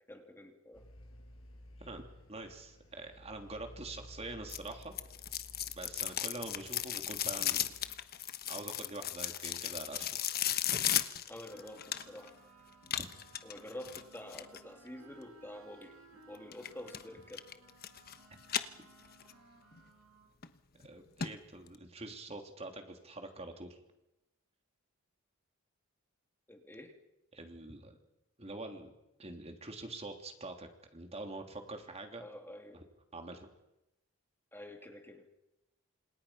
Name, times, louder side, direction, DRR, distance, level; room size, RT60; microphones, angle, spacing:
voice 1, 0.1-0.8 9.9-10.1 11.3-12.3 13.4-15.9 16.3-17.4 26.5-27.0 32.2-32.8 34.5-35.3, left 1 dB, 10° left, 4 dB, 2.5 m, -48 dB
sound 1, 0.7-7.9, left 1 dB, 75° left, 5.8 m, -55 dB
voice 2, 2.3-4.9 5.7-7.7 8.5-10.1 12.9-13.1 20.8-23.8 27.3-28.0 28.4-28.9 29.2-32.2 32.7-32.8 33.1-33.5, right 2 dB, 30° right, 4 dB, 3.2 m, -45 dB
sound 2, 4.5-12.3 12.9-14.6 16.5-17.0 17.3-18.2 18.4-19.3 19.7-19.8 20.4-20.5 20.8-20.9 21.2-21.3 21.7-21.8, left 11 dB, 45° left, 1.2 m, -35 dB
sound 3, 11.5-20.3, right 2 dB, 80° right, 7.4 m, -60 dB
29.5 x 27.5 x 5.8 m, 0.90 s
head